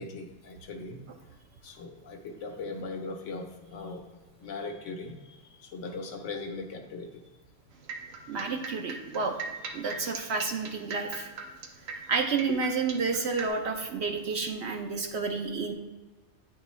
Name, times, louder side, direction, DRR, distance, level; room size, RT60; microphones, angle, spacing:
voice 1, 0.0-1.4 1.6-4.1 4.4-7.2 9.8-10.0 12.3-12.6, left 3 dB, 70° left, 5 dB, 1.2 m, -40 dB
sound 1, 7.7-13.5, right 4 dB, 85° right, 1.2 m, -39 dB
voice 2, 8.3-9.4 9.7-11.3 12.1-15.7, right 4 dB, 60° right, 3 dB, 0.9 m, -30 dB
9.1 x 4.4 x 3.1 m, 1.3 s
omnidirectional pair, 1.3 m